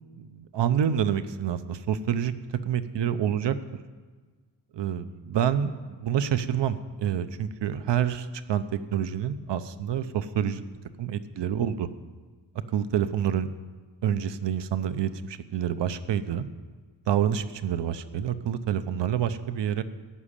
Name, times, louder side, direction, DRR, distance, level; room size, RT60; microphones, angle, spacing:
voice 1, 0.2-2.3 2.7-3.5 4.7-5.7 6.0-10.6 11.0-11.9 12.7-13.5 14.0-16.5 17.1-19.8, right 9 dB, 75° right, 12 dB, 0.8 m, -27 dB
14.0 x 6.2 x 9.9 m, 1.4 s
wide cardioid pair, 155°, 43 cm